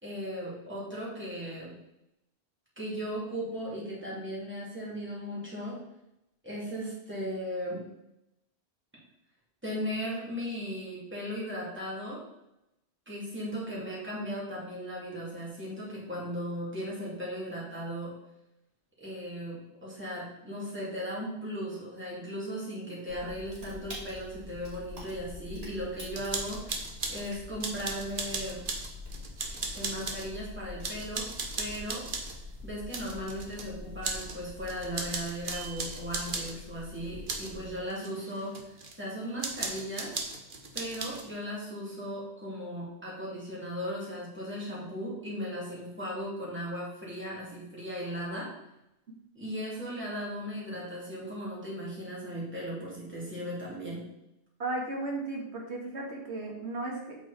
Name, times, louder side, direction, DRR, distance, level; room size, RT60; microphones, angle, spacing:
voice 1, 0.0-1.7 2.8-5.8 6.4-7.9 9.6-12.2 13.1-18.1 19.0-28.6 29.7-31.3 31.6-32.0 32.6-40.1 40.7-48.5 49.3-54.0, equal, 10° right, -7 dB, 2.8 m, -37 dB
sound 1, 23.1-37.8, left 2 dB, 35° right, 2.9 m, -45 dB
sound 2, 26.2-27.2 27.6-30.3 30.8-32.4 32.9-33.7 34.0-34.4 34.6-36.6 37.3-37.5 37.9-38.9 39.4-41.3, right 3 dB, 50° right, 1.2 m, -37 dB
voice 2, 54.6-57.2, right 2 dB, 80° right, -1 dB, 2.0 m, -35 dB
8.3 x 4.7 x 4.3 m, 0.88 s
omnidirectional pair, 1.1 m